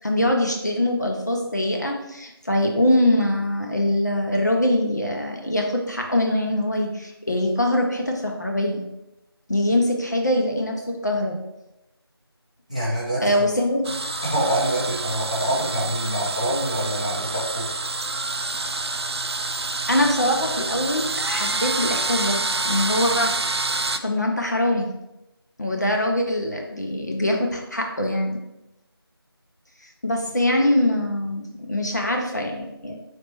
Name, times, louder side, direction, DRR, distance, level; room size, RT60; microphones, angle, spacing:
voice 1, 0.0-8.8 9.5-11.4 13.2-13.9 19.9-23.3 24.0-24.9 25.6-28.4 29.8-33.0, left 1 dB, 45° left, 1 dB, 0.6 m, -23 dB
voice 2, 12.7-13.5 14.3-17.7, right 1 dB, 15° right, -9 dB, 0.7 m, -25 dB
sound 1, 13.8-24.0, right 3 dB, 90° right, 0.4 m, -27 dB
5.3 x 3.4 x 2.9 m, 0.91 s
figure-of-eight pair, 175°, 13 cm